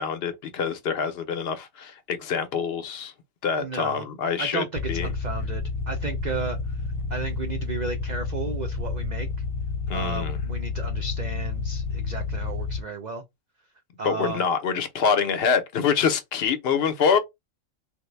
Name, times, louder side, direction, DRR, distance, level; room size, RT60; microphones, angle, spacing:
voice 1, 0.0-3.1 3.4-5.1 9.9-10.4 14.0-17.2, left 6 dB, 55° left, 0.8 m, -25 dB
voice 2, 3.6-4.1 4.4-6.8 7.1-9.3 9.9-13.2 14.0-14.4, right 4 dB, 80° right, 0.4 m, -34 dB
sound 1, 4.7-12.8, left 4 dB, 80° left, 1.1 m, -30 dB
3.4 x 2.1 x 3.2 m
omnidirectional pair, 1.4 m